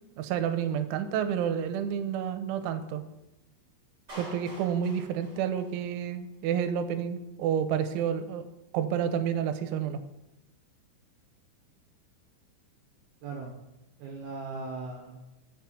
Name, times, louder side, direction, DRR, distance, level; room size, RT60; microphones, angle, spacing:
voice 1, 0.1-3.0 4.2-8.5 8.7-10.0, right 8 dB, 85° right, 9 dB, 3.2 m, -30 dB
Clapping, 4.1-6.1, equal, 25° right, 3.5 m, -47 dB
voice 2, 14.0-15.3, right 3 dB, 65° right, 0 dB, 2.7 m, -38 dB
7.3 x 5.8 x 7.5 m, 0.97 s
omnidirectional pair, 5.4 m